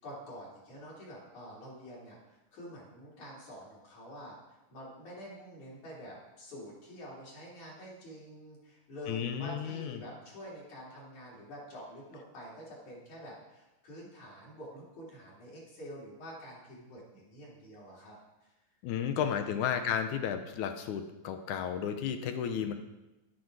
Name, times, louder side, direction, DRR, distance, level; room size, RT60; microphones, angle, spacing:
voice 1, 0.0-4.4 4.7-18.2 19.2-19.4 19.7-19.8, equal, 55° left, -6 dB, 4.6 m, -47 dB
voice 2, 9.1-10.0 18.8-22.7, left 8 dB, 75° left, 7 dB, 1.9 m, -33 dB
11.0 x 10.0 x 4.7 m, 1.0 s
omnidirectional pair, 4.0 m